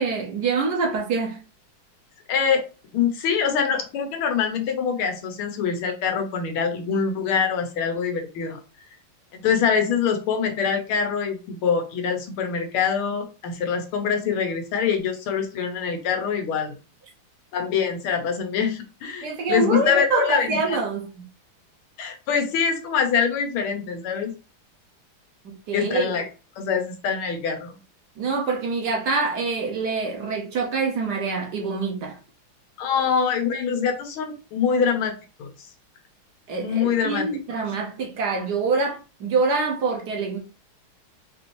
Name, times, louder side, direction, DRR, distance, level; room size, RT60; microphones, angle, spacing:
voice 1, 0.0-1.4 19.2-21.2 25.4-26.1 28.2-32.2 36.5-40.4, right 4 dB, 60° right, 1.2 m, -25 dB
voice 2, 2.3-2.7 2.9-8.6 9.3-16.7 17.5-20.8 22.0-24.3 25.7-26.3 26.6-27.8 32.8-35.1 35.4-35.7 36.6-37.3, left 6 dB, 90° left, 1.7 m, -24 dB
4.9 x 2.6 x 3.0 m
omnidirectional pair, 2.3 m